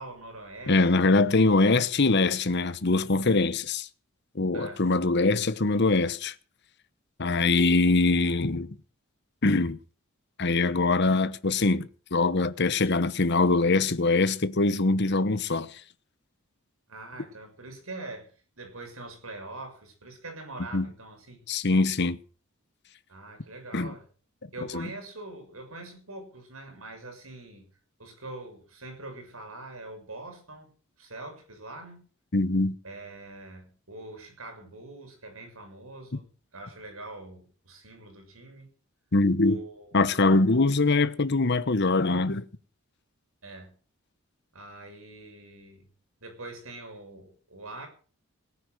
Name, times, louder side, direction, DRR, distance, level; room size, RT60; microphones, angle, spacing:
voice 1, 0.0-1.2 4.5-4.9 7.3-7.5 16.9-21.4 23.1-24.0 24.5-27.7 28.0-32.0 32.8-36.3 36.5-38.7 39.4-40.3 43.4-43.8 44.5-45.9 46.2-47.9, right 2 dB, 75° right, 6.7 m, -43 dB
voice 2, 0.7-3.9 4.3-6.3 7.2-8.7 9.4-9.8 10.4-15.8 20.7-20.9 21.5-22.2 23.7-23.9 24.7-24.9 32.3-32.7 39.1-39.6 39.9-42.4, left 3 dB, 50° left, 1.0 m, -23 dB
18.0 x 9.7 x 6.6 m
head